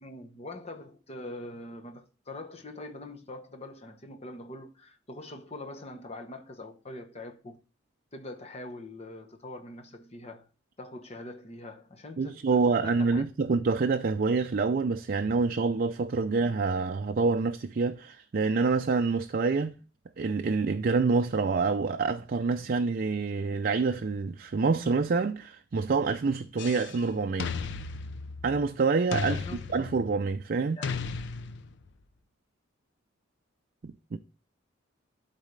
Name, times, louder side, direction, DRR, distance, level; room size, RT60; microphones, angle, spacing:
voice 1, 0.0-7.6 8.1-10.5 10.8-13.2 29.3-29.7 30.8-30.9, left 2 dB, 35° left, 1.1 m, -43 dB
voice 2, 12.2-19.8 20.2-27.5 28.4-29.4 29.7-30.8 33.8-34.2, right 4 dB, 50° right, 0.4 m, -27 dB
sound 1, 26.6-27.0 27.4-28.7 29.1-30.2 30.8-31.9, left 4 dB, 65° left, 0.6 m, -35 dB
12.0 x 4.1 x 3.3 m
head